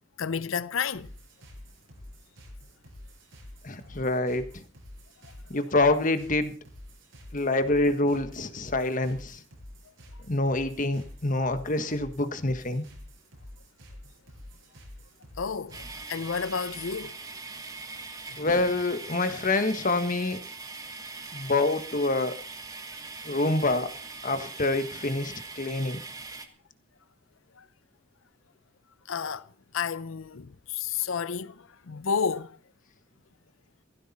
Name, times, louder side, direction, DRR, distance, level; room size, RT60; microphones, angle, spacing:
voice 1, 0.2-1.1 15.4-17.1 27.6-27.7 29.1-29.4 29.7-32.6, left 6 dB, 85° left, 0.7 m, -31 dB
sound 1, 0.9-16.2, left 1 dB, 75° right, 7.2 m, -48 dB
voice 2, 3.6-4.6 5.5-6.5 7.3-9.4 10.3-12.8 18.4-20.4 21.3-22.4 23.2-23.9 24.2-26.0, left 2 dB, 40° left, 1.5 m, -26 dB
sound 2, 15.7-26.5, right 3 dB, 20° right, 1.6 m, -41 dB
17.0 x 15.0 x 4.3 m
head